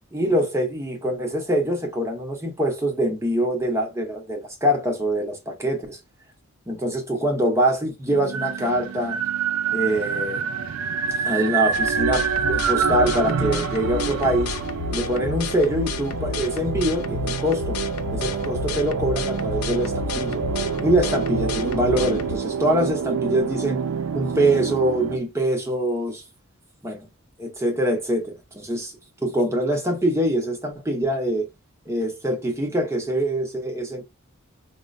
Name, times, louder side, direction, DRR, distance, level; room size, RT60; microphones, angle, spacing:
voice 1, 0.1-6.0 6.7-9.2 9.7-10.5 11.2-14.6 14.9-17.8 18.1-20.4 20.8-23.8 24.1-26.2 26.8-27.1 27.4-28.9 29.2-31.5 31.9-34.0, right 1 dB, 10° right, 0.6 m, -24 dB
sound 1, 8.1-25.2, right 6 dB, 75° right, 0.4 m, -27 dB
sound 2, 11.7-22.4, left 6 dB, 85° left, 0.4 m, -32 dB
4.2 x 2.1 x 2.4 m
head